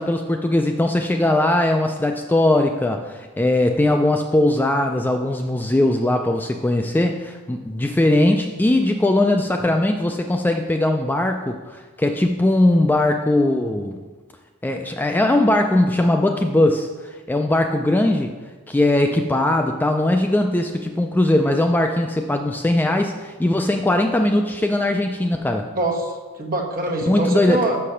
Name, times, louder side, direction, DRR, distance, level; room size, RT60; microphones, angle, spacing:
voice 1, 0.0-14.0 14.6-16.9 17.3-18.3 18.7-25.7 27.1-27.7, left 1 dB, 10° left, 4 dB, 0.3 m, -20 dB
voice 2, 25.7-27.8, right 2 dB, 40° right, -1 dB, 1.3 m, -24 dB
6.6 x 6.2 x 5.6 m, 1.3 s
head